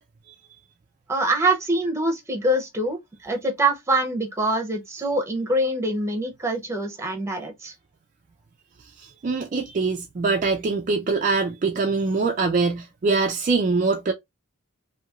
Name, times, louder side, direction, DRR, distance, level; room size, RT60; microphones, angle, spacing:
voice 1, 1.1-7.7, right 1 dB, 15° right, 0.7 m, -24 dB
voice 2, 9.0-14.1, right 4 dB, 35° right, 0.3 m, -23 dB
3.0 x 2.7 x 2.3 m
head